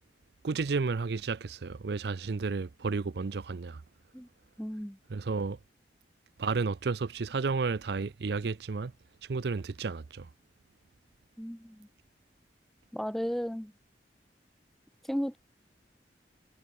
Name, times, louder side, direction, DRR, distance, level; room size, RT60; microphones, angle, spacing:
voice 1, 0.4-3.8 5.1-5.6 6.4-8.9 9.3-10.3, right 4 dB, 65° right, 0.5 m, -32 dB
voice 2, 4.6-5.0 11.4-11.9 12.9-13.7 15.1-15.4, equal, ahead, 0.6 m, -34 dB
head